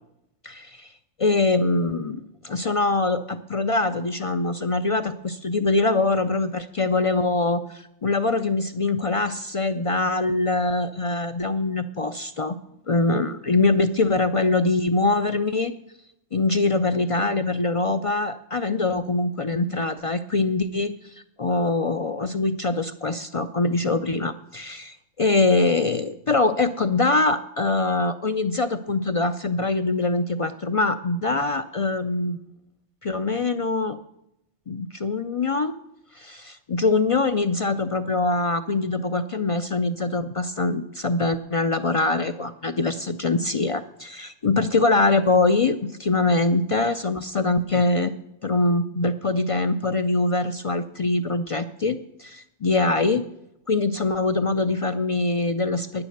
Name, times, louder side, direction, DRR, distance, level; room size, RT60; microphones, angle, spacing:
voice 1, 0.4-0.9 1.2-12.6 12.9-15.7 16.3-32.4 33.0-34.0 34.7-35.7 36.1-48.1 48.4-53.2 53.7-56.0, left 3 dB, 60° left, 10 dB, 0.3 m, -23 dB
10.5 x 9.7 x 6.5 m, 0.81 s
omnidirectional pair, 1.3 m